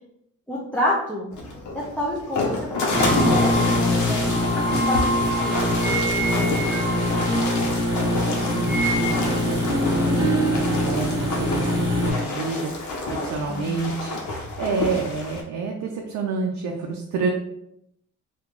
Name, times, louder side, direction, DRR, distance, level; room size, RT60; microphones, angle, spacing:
voice 1, 0.5-1.3 2.0-2.5 2.8-5.6 13.1-13.7, left 1 dB, 5° left, -5 dB, 0.7 m, -29 dB
sound 1, 1.3-15.4, left 2 dB, 70° left, 0.9 m, -29 dB
sound 2, 2.7-8.0 8.3-9.4, right 1 dB, 30° left, 1.2 m, -30 dB
sound 3, 2.9-12.1, left 1 dB, 15° right, 1.4 m, -23 dB
voice 2, 6.3-7.4 7.9-14.2 14.6-17.3, right 4 dB, 65° right, 2 dB, 0.5 m, -30 dB
2.9 x 2.5 x 3.6 m, 0.78 s
cardioid pair, 90°, 30 cm